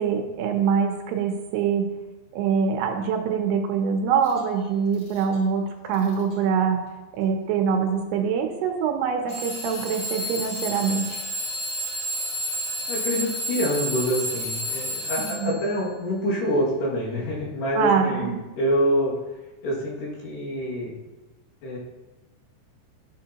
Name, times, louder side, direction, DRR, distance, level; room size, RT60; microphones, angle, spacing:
voice 1, 0.0-1.9 2.3-6.8 7.2-11.2 15.2-15.5 17.7-18.4, right 6 dB, 80° right, 4 dB, 2.6 m, -24 dB
Alarm / Clock, 4.2-4.4 4.9-5.4 5.9-6.3 7.2-7.3 9.3-15.7, left 1 dB, 30° left, 2.4 m, -31 dB
voice 2, 12.9-19.2 19.6-21.0 21.6-21.8, equal, 70° left, -6 dB, 4.0 m, -26 dB
13.0 x 6.8 x 2.9 m, 1.1 s
omnidirectional pair, 5.0 m